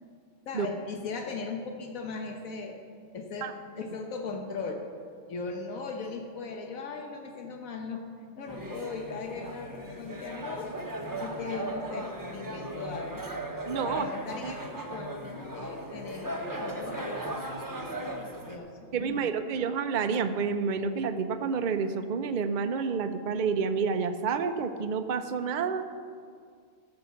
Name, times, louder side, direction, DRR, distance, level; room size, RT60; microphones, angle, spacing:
voice 1, 0.5-2.8 3.1-4.9 5.3-8.0 8.4-13.3 13.8-19.6, left 4 dB, 90° left, 3 dB, 1.5 m, -38 dB
sound 1, 8.5-18.6, right 1 dB, 15° right, 0.9 m, -37 dB
voice 2, 13.7-14.0 14.4-14.5 18.9-25.9, right 5 dB, 45° right, 8 dB, 0.7 m, -29 dB
14.0 x 6.7 x 7.1 m, 2.1 s
omnidirectional pair, 1.4 m